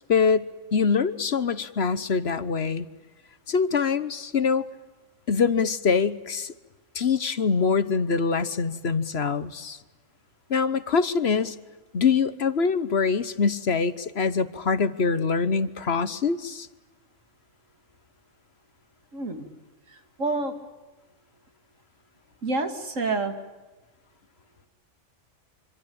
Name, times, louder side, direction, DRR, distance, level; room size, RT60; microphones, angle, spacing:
voice 1, 0.1-2.9 3.5-4.7 5.3-6.5 6.9-9.8 10.5-11.5 11.9-16.7, left 5 dB, 55° left, 15 dB, 1.3 m, -24 dB
voice 2, 19.1-19.5 19.9-20.6 22.4-23.3, right 3 dB, 80° right, 7 dB, 3.0 m, -28 dB
26.5 x 25.5 x 8.8 m, 1.2 s
omnidirectional pair, 1.3 m